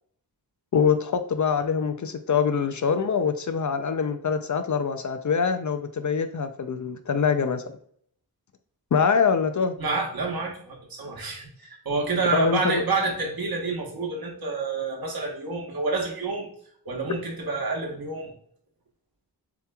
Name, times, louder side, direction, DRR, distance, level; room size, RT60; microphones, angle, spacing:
voice 1, 0.7-7.6 8.9-9.7 12.3-12.8, left 6 dB, 50° left, 9 dB, 0.5 m, -24 dB
voice 2, 9.8-16.5 16.8-18.3, right 3 dB, 65° right, 0 dB, 1.3 m, -28 dB
7.0 x 2.9 x 2.3 m, 0.62 s
wide cardioid pair, 95°, 39 cm